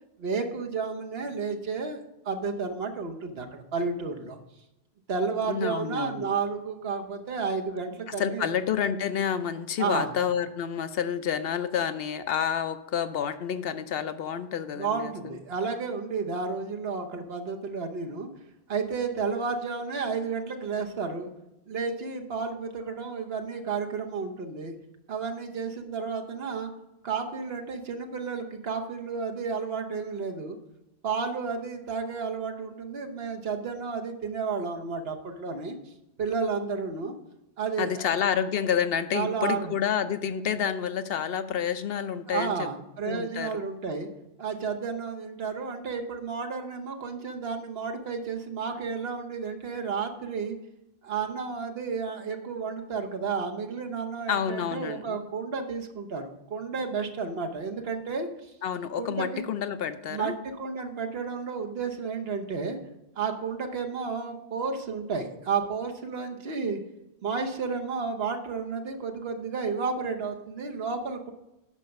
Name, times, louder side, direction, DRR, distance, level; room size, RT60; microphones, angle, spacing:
voice 1, 0.2-4.4 5.1-8.5 9.8-10.1 14.7-18.3 18.7-21.3 21.7-24.8 25.1-26.7 27.0-30.6 31.0-35.8 36.2-37.2 37.6-38.1 39.1-39.7 42.3-44.1 44.4-50.6 51.0-58.5 58.9-59.4 60.1-62.8 63.2-66.8 67.2-71.3, right 5 dB, 70° right, 4 dB, 1.2 m, -32 dB
voice 2, 5.5-6.3 8.1-15.4 37.8-42.7 43.0-43.6 54.3-55.2 58.6-60.4, left 8 dB, 70° left, 11 dB, 0.8 m, -29 dB
9.8 x 5.8 x 5.3 m, 0.91 s
omnidirectional pair, 1.1 m